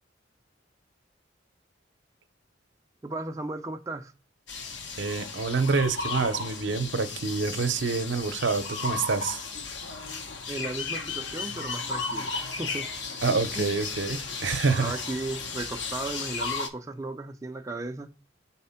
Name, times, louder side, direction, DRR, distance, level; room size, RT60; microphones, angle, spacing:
voice 1, 3.0-4.1 10.5-12.3 12.6-12.9 13.6-13.8 14.8-18.1, right 2 dB, 15° right, 0.4 m, -35 dB
sound 1, 4.5-16.7, left 4 dB, 70° left, 0.8 m, -34 dB
voice 2, 5.0-9.4 13.2-15.0, right 4 dB, 70° right, 0.6 m, -27 dB
4.3 x 4.2 x 5.6 m
head